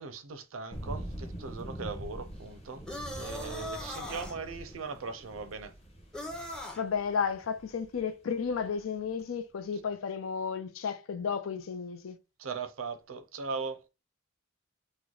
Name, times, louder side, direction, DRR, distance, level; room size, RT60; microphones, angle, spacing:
voice 1, 0.0-2.9 3.2-5.7 12.4-13.8, right 4 dB, 85° right, 0.5 m, -39 dB
sound 1, 0.7-9.0, right 1 dB, 35° left, 1.1 m, -44 dB
sound 2, 2.9-4.4 6.1-6.8, left 1 dB, 5° left, 0.5 m, -39 dB
voice 2, 6.8-12.2, left 6 dB, 90° left, 0.5 m, -33 dB
3.0 x 2.1 x 3.8 m
head